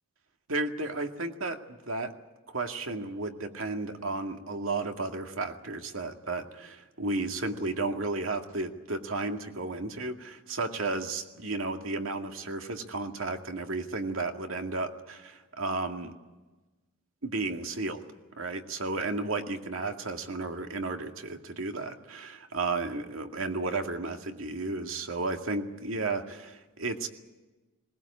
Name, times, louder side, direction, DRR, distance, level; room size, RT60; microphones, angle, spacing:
voice 1, 0.5-2.1 2.5-16.1 17.2-18.0 18.4-27.1, right 3 dB, 80° right, 4 dB, 2.2 m, -33 dB
20.5 x 20.0 x 8.6 m, 1.2 s
head